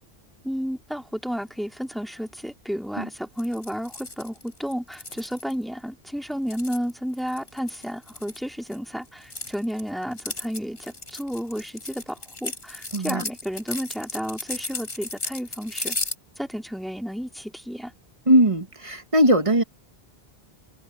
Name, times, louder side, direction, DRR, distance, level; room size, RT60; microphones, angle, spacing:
voice 1, 0.4-16.0 16.4-17.9, equal, ahead, 2.2 m, -32 dB
sound 1, 3.4-5.5 6.3-8.8 9.1-16.2, left 2 dB, 60° left, 3.5 m, -35 dB
voice 2, 12.9-13.2 18.3-19.6, right 1 dB, 35° right, 1.5 m, -19 dB
omnidirectional pair, 1.0 m